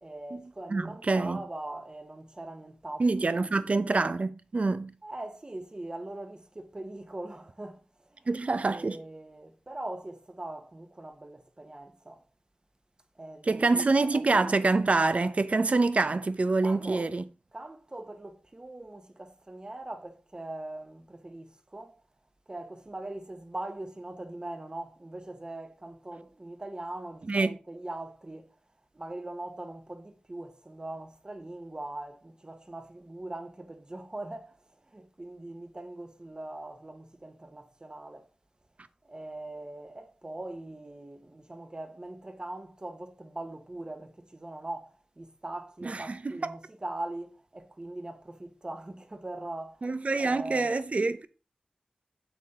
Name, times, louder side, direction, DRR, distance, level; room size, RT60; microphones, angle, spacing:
voice 1, 0.0-3.9 5.0-8.3 8.7-12.2 13.1-14.2 16.6-17.1 17.5-22.0 22.5-28.6 28.9-38.3 39.0-49.9 50.2-50.7, right 2 dB, 30° right, 1.3 m, -41 dB
voice 2, 0.7-1.4 3.0-4.9 8.3-9.0 13.5-17.2 27.3-27.6 45.8-46.5 49.8-51.3, right 3 dB, 55° right, 0.8 m, -26 dB
8.3 x 7.3 x 3.8 m
wide cardioid pair, 70°, 3 cm